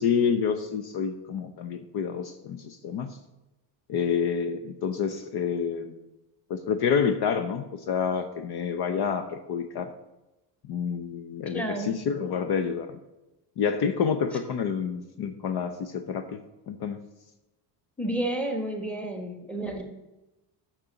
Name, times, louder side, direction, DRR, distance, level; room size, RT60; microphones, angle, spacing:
voice 1, 0.0-3.2 3.9-6.0 6.5-9.9 10.6-12.9 13.6-16.4 16.7-17.0, left 6 dB, 55° left, 9 dB, 0.7 m, -28 dB
voice 2, 11.4-12.0 18.0-19.8, right 1 dB, 5° left, 3 dB, 1.3 m, -31 dB
6.6 x 6.1 x 6.7 m, 1.0 s
cardioid pair, 145°, 48 cm